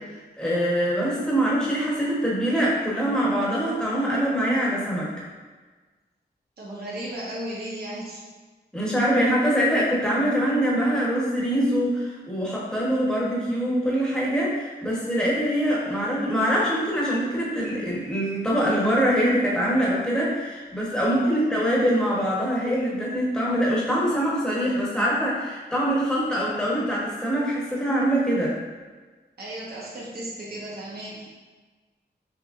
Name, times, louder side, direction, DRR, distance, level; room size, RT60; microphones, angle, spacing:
voice 1, 0.4-5.1 8.7-28.5, equal, 5° left, -6 dB, 1.0 m, -24 dB
voice 2, 6.6-8.2 21.1-21.6 26.3-26.4 29.4-31.3, right 1 dB, 60° right, -6 dB, 0.9 m, -36 dB
6.1 x 3.0 x 2.5 m, 1.3 s
wide cardioid pair, 180°, 18 cm